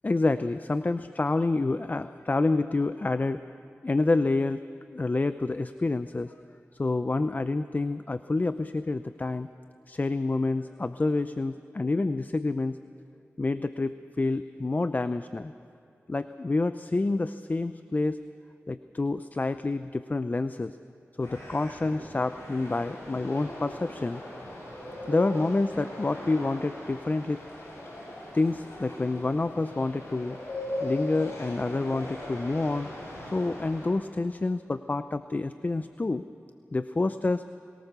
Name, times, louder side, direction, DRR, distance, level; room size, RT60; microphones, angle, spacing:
voice 1, 0.0-3.4 3.8-4.6 4.9-6.3 6.8-9.5 9.9-12.8 13.4-15.5 16.1-18.2 18.7-20.8 21.2-24.2 25.1-27.4 28.3-30.4 30.8-32.9 33.2-36.2 36.7-37.4, left 2 dB, 35° left, 12 dB, 0.6 m, -28 dB
sound 1, 21.2-33.9, left 1 dB, 70° left, 7.2 m, -39 dB
21.5 x 18.5 x 6.8 m, 2.7 s
cardioid pair, 50°, 5 cm